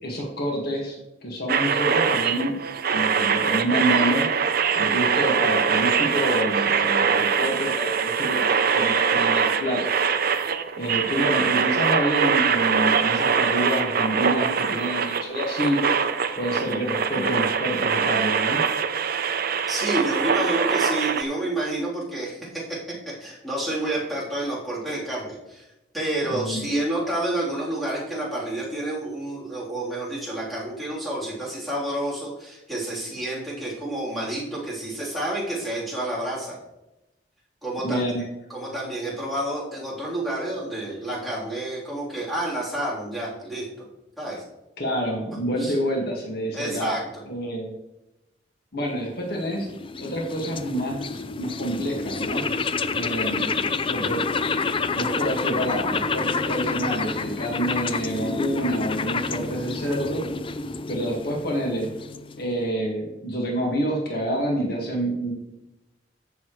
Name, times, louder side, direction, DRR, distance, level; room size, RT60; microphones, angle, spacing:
voice 1, 0.0-2.6 2.9-4.3 4.7-9.8 10.8-15.8 16.4-18.6 26.3-26.7 37.8-38.2 44.8-46.9 47.3-47.7 48.7-49.7 50.0-52.4 52.9-53.6 53.9-54.3 55.0-60.2 60.9-61.9 62.4-65.3, equal, 60° left, -1 dB, 1.9 m, -28 dB
sound 1, 1.5-21.2, right 6 dB, 55° right, 0.7 m, -23 dB
voice 2, 19.7-22.8 23.2-25.7 25.9-36.6 37.6-38.0 38.5-43.6 44.2-44.4 45.6-45.7 46.5-47.1, right 1 dB, ahead, -7 dB, 3.6 m, -29 dB
sound 2, 49.2-62.6, left 4 dB, 30° left, 0.4 m, -28 dB
14.0 x 7.1 x 3.2 m, 0.96 s
head